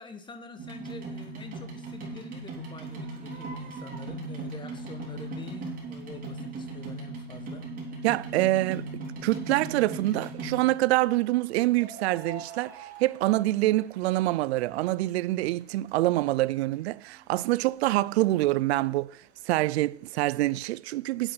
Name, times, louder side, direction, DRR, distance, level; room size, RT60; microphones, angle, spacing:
voice 1, 0.0-7.7, left 4 dB, 15° left, 1.1 m, -46 dB
sound 1, 0.6-10.9 11.7-13.8 14.1-15.1 15.6-15.7 15.9-16.0 16.2-16.3 16.7-16.8 17.0-17.1, right 3 dB, 25° right, 3.4 m, -38 dB
voice 2, 8.0-8.9 9.2-19.2 19.5-21.3, right 17 dB, 90° right, 0.5 m, -26 dB
10.0 x 8.0 x 5.7 m
supercardioid pair, 140°, 31 cm